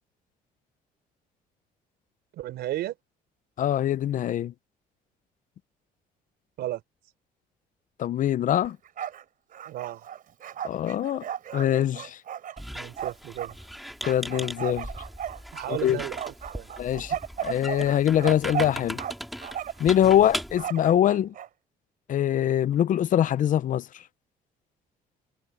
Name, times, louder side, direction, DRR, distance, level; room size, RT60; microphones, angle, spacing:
voice 1, 2.3-3.0 6.6-6.8 9.6-10.1 12.7-13.6 15.5-16.7 20.0-20.3, right 14 dB, 75° right, 4.6 m, -34 dB
voice 2, 3.6-4.5 8.0-8.8 10.6-11.2 11.5-12.2 14.1-14.9 15.7-16.0 16.8-19.0 19.8-21.3 22.1-23.9, left 11 dB, 50° left, 0.6 m, -23 dB
Bark, 8.7-9.2 9.5-13.5 14.0-15.8 16.2-19.1 19.4-19.9 20.6-21.5, right 9 dB, 55° right, 3.8 m, -35 dB
Squeak, 12.6-20.7, equal, ahead, 5.0 m, -38 dB
cardioid pair, 110°, 17 cm